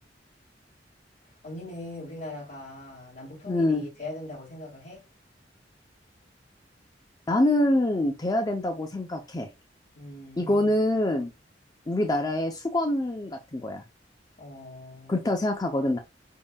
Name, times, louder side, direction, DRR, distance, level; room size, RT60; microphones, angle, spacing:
voice 1, 1.4-5.0 9.9-10.7 14.4-15.3, left 1 dB, 40° left, 1.9 m, -41 dB
voice 2, 3.5-3.8 7.3-9.5 10.4-11.3 11.9-13.8 15.1-16.0, left 1 dB, 20° left, 0.5 m, -25 dB
5.2 x 3.6 x 2.2 m
head